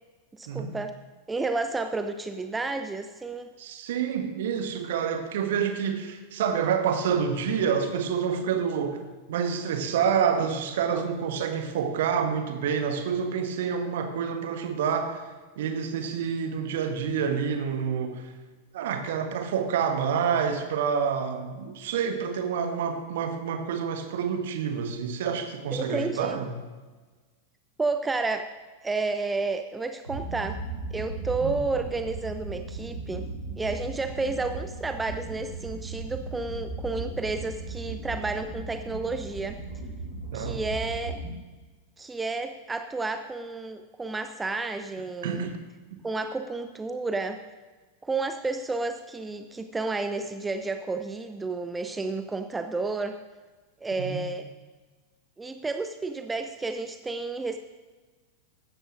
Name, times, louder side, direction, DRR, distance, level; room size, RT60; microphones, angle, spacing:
voice 1, 0.3-0.9 1.3-3.5 10.9-11.0 25.7-26.4 27.8-28.5 28.8-30.6 30.9-33.3 33.6-39.6 40.3-41.2 42.0-45.5 46.0-47.4 48.0-53.2 53.8-54.5 55.4-57.6, right 3 dB, 10° right, 8 dB, 0.5 m, -31 dB
voice 2, 3.6-9.0 9.3-15.3 15.6-18.3 18.7-26.5 31.4-31.6 40.3-40.6 45.2-45.6 54.0-54.2, right 7 dB, 55° right, 7 dB, 1.2 m, -28 dB
sound 1, 30.0-41.3, right 3 dB, 85° right, 4.0 m, -37 dB
15.0 x 12.5 x 2.6 m, 1.3 s
figure-of-eight pair, 90°, 0 cm